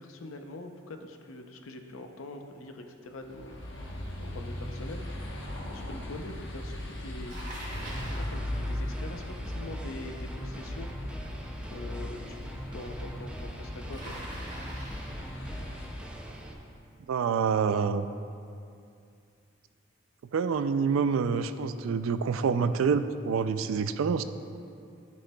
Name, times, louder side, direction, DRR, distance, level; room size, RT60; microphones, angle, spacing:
voice 1, 0.0-3.6 4.2-5.3 5.7-7.4 8.2-10.9 11.7-12.4 12.7-14.2, left 2 dB, 90° left, 5 dB, 0.6 m, -43 dB
sound 1, 3.2-16.7, left 1 dB, 60° left, 1.0 m, -38 dB
Bicycle, 7.3-8.4 13.9-15.2, right 1 dB, 35° right, 1.8 m, -43 dB
sound 2, 7.8-16.5, right 1 dB, 5° right, 0.4 m, -43 dB
voice 2, 17.1-18.1 20.3-24.2, right 6 dB, 90° right, 11 dB, 0.3 m, -27 dB
12.5 x 6.3 x 2.3 m, 2.5 s
head